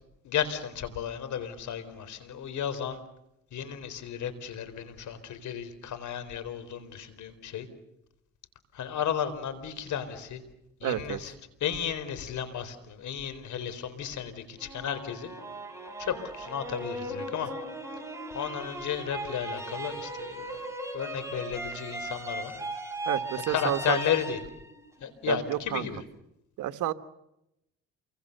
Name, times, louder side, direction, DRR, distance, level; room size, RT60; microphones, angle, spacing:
voice 1, 0.2-3.0 3.5-7.7 8.7-10.4 10.8-11.3 11.6-15.3 16.0-17.5 18.3-20.6 20.9-22.6 23.5-24.4 25.0-26.0, left 8 dB, 75° left, 12 dB, 4.4 m, -33 dB
voice 2, 10.8-11.2 23.0-24.0 25.3-25.9 26.6-26.9, right 12 dB, 85° right, 9 dB, 1.6 m, -30 dB
sound 1, 14.6-25.6, right 1 dB, 10° right, 6.5 m, -38 dB
28.5 x 24.5 x 6.8 m, 0.84 s
cardioid pair, 90°, 30 cm